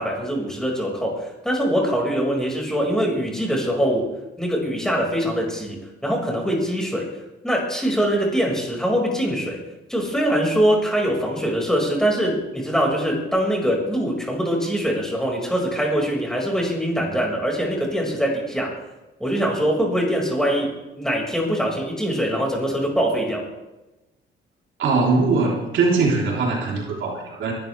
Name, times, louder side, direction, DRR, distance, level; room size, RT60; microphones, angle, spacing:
voice 1, 0.0-4.1 4.4-7.1 7.4-9.6 9.9-18.7 19.2-23.4, equal, 5° left, -1 dB, 5.5 m, -23 dB
voice 2, 24.8-27.5, right 3 dB, 75° right, -3 dB, 3.8 m, -21 dB
22.5 x 12.5 x 3.5 m, 1.0 s
cardioid pair, 90°, 20 cm